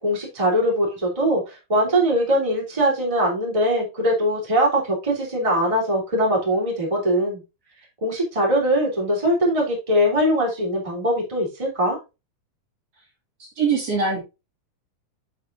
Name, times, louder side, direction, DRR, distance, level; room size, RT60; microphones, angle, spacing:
voice 1, 0.0-7.4 8.0-12.0, equal, 10° right, -2 dB, 2.7 m, -21 dB
voice 2, 13.4-14.2, right 5 dB, 50° right, -2 dB, 2.8 m, -23 dB
7.6 x 7.4 x 2.5 m, 0.26 s
omnidirectional pair, 3.9 m